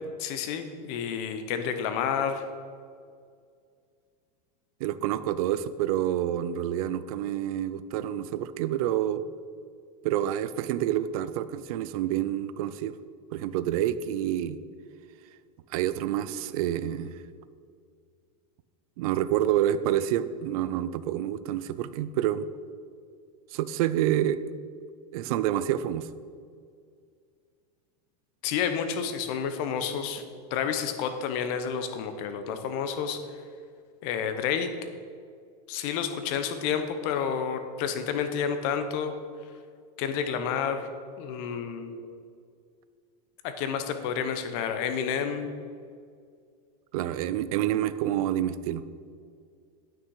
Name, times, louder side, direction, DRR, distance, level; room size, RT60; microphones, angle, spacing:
voice 1, 0.2-2.4 28.4-30.2 30.5-33.2 34.0-34.7 35.7-39.1 40.0-40.9 41.2-42.1 43.4-45.5, left 7 dB, 50° left, 8 dB, 0.9 m, -30 dB
voice 2, 4.8-9.2 10.0-13.0 13.3-14.6 15.7-17.2 19.0-22.5 23.5-24.4 25.1-26.1 46.9-48.9, right 11 dB, 60° right, 14 dB, 0.5 m, -28 dB
9.0 x 6.3 x 4.8 m, 2.2 s
supercardioid pair, 145°, 21 cm